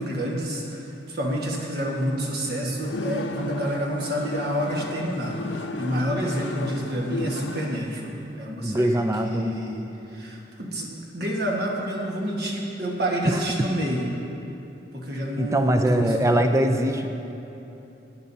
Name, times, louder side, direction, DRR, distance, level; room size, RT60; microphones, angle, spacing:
voice 1, 0.0-9.8 10.1-14.1 14.9-16.1, equal, 55° right, -2 dB, 1.4 m, -28 dB
sound 1, 2.8-7.8, left 2 dB, 70° left, 0.5 m, -33 dB
voice 2, 8.6-9.5 13.3-13.4 15.4-17.1, right 1 dB, 15° right, 6 dB, 0.4 m, -22 dB
15.5 x 10.0 x 2.7 m, 3.0 s
head